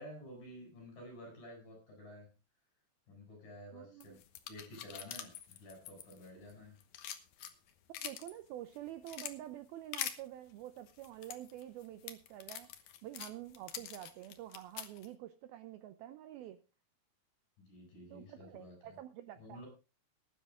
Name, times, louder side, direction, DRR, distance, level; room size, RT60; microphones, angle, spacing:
voice 1, 0.0-2.3 3.1-4.2 4.5-6.8 17.7-19.0 19.4-19.7, equal, 50° left, 2 dB, 9.3 m, -51 dB
voice 2, 3.7-4.2 8.0-16.6 18.1-19.6, right 13 dB, 80° right, 11 dB, 2.3 m, -48 dB
sound 1, 4.0-6.5 6.8-8.3 8.7-9.3 9.9-10.2 10.9-15.1, left 10 dB, 70° left, 1.8 m, -44 dB
18.5 x 10.5 x 3.6 m, 0.32 s
omnidirectional pair, 5.0 m